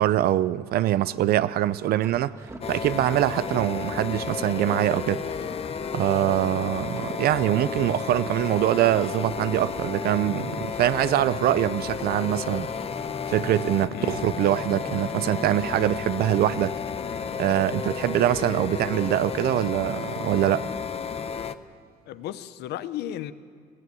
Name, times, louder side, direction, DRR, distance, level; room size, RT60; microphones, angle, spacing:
voice 1, 0.0-2.3 2.7-5.2 5.9-12.7 13.3-16.7 17.4-20.7, right 13 dB, 65° right, 0.5 m, -24 dB
sound 1, 1.5-10.4, right 2 dB, 15° right, 2.2 m, -46 dB
sound 2, 2.6-21.5, left 6 dB, 35° left, 0.8 m, -32 dB
sound 3, 12.3-18.9, left 1 dB, 5° left, 1.9 m, -44 dB
voice 2, 13.9-14.3 22.1-23.3, left 12 dB, 80° left, 0.8 m, -34 dB
20.0 x 15.0 x 9.5 m
cardioid pair, 110°, 17 cm